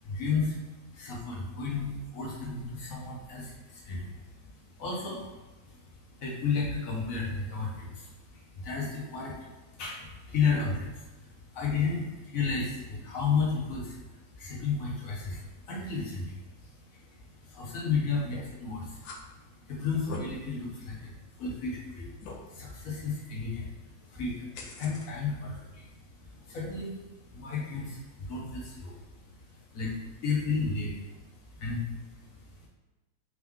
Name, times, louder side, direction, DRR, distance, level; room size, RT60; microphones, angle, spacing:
voice 1, 0.0-19.1 19.3-29.0 29.5-32.7, left 5 dB, 50° left, -4 dB, 1.3 m, -34 dB
sound 1, 18.3-18.6 19.0-19.2 19.8-20.2 20.8-20.9 21.4-21.5 22.2-22.4 24.5-25.1, left 4 dB, 80° left, 1.4 m, -41 dB
3.7 x 3.3 x 3.6 m, 1.1 s
omnidirectional pair, 2.1 m